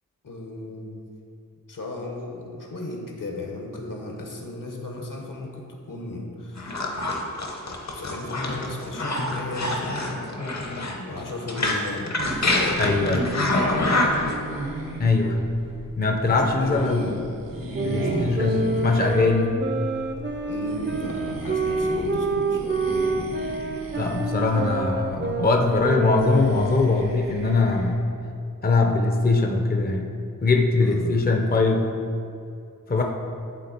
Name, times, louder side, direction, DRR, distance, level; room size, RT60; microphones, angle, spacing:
voice 1, 0.2-1.0 1.7-6.9 7.6-10.2 11.1-13.3 16.3-17.2 18.0-18.5 20.4-22.9 23.1-23.3 30.8-31.2 32.9-33.0, left 2 dB, 70° left, 0 dB, 1.2 m, -35 dB
sound 1, 6.6-14.4, left 2 dB, 55° left, 1.0 m, -26 dB
sound 2, 12.2-28.0, right 1 dB, 80° right, 1.1 m, -36 dB
voice 2, 12.8-13.3 15.0-15.5 16.0-17.1 17.8-19.6 23.9-28.0 28.6-30.1 30.4-31.9 32.9-33.0, left 3 dB, 30° left, 2 dB, 0.6 m, -22 dB
sound 3, 17.7-27.4, right 3 dB, 35° right, 0.6 m, -28 dB
11.0 x 3.7 x 4.3 m, 2.6 s
wide cardioid pair, 100°, 34 cm